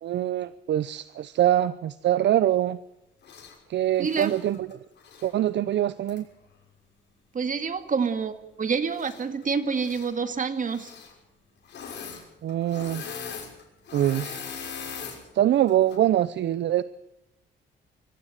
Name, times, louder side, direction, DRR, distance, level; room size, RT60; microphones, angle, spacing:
voice 1, 0.0-2.8 3.7-4.8 5.2-6.3 12.4-13.0 13.9-14.5 15.3-16.8, right 12 dB, 65° right, 16 dB, 0.6 m, -24 dB
Engine / Mechanisms, 3.2-3.6 4.0-5.3 6.1-6.2 8.9-9.4 9.7-10.1 10.7-11.1 11.6-12.2 12.5-15.2 15.7-16.0, left 6 dB, 60° left, 6.1 m, -40 dB
voice 2, 4.0-4.3 7.3-10.9, right 5 dB, 40° right, 9 dB, 2.1 m, -27 dB
23.0 x 15.0 x 8.1 m, 0.90 s
cardioid pair, 90°, 20 cm